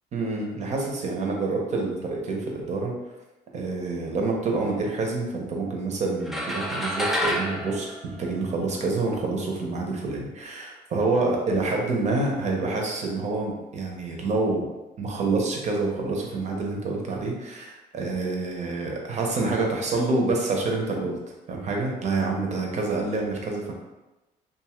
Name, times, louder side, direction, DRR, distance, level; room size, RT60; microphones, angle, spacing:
voice 1, 0.1-2.9 3.5-14.7 15.0-21.2 21.5-23.7, right 3 dB, 45° right, 0 dB, 0.7 m, -27 dB
sound 1, 6.3-8.9, equal, ahead, 0.3 m, -29 dB
2.6 x 2.4 x 3.0 m, 1.1 s
cardioid pair, 110°, 17 cm